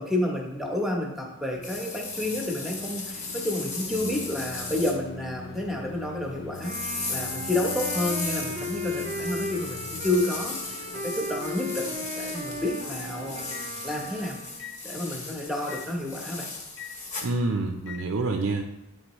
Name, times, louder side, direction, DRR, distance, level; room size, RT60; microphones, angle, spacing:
voice 1, 0.0-13.4 13.8-14.4 14.8-16.5, left 1 dB, ahead, -1 dB, 0.9 m, -30 dB
Microwave oven, 1.5-18.0, left 4 dB, 60° left, 0.4 m, -44 dB
sound 1, 1.6-4.9 6.5-17.3, left 4 dB, 40° left, 1.0 m, -36 dB
Wind instrument woodwind instrument, 6.6-14.7, equal, 35° right, 0.5 m, -36 dB
voice 2, 17.2-18.6, right 3 dB, 90° right, 3 dB, 0.5 m, -27 dB
9.0 x 3.8 x 3.0 m, 0.91 s
head